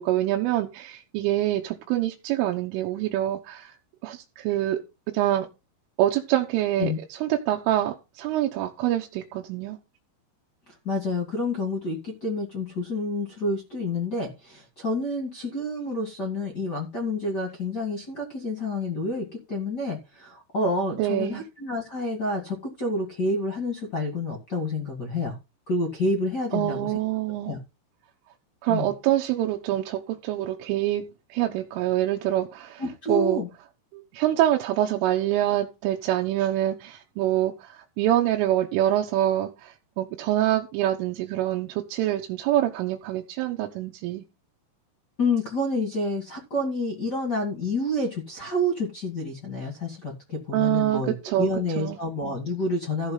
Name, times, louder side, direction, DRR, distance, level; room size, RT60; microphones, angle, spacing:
voice 1, 0.0-3.7 4.0-4.8 5.1-5.5 6.0-6.9 7.2-9.8 21.0-21.4 26.5-27.6 28.6-31.0 31.3-32.8 33.1-33.4 33.9-44.2 50.5-51.5 51.8-52.0, right 13 dB, 80° right, 3.4 m, -25 dB
voice 2, 10.8-25.4 25.7-26.9 27.5-27.6 28.7-28.9 32.8-33.5 45.2-53.1, left 2 dB, 45° left, 1.3 m, -28 dB
14.5 x 4.8 x 5.6 m
omnidirectional pair, 6.0 m